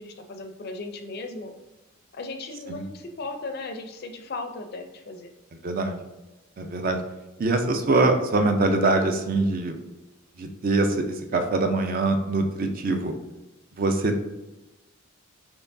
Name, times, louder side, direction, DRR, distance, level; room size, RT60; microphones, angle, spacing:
voice 1, 0.0-1.5 2.1-5.3, left 3 dB, 50° left, 6 dB, 0.4 m, -36 dB
voice 2, 5.6-6.0 6.6-7.0 7.4-9.8 10.4-13.1 13.8-14.2, right 2 dB, 40° right, 5 dB, 0.4 m, -23 dB
4.4 x 3.0 x 2.6 m, 1.0 s
head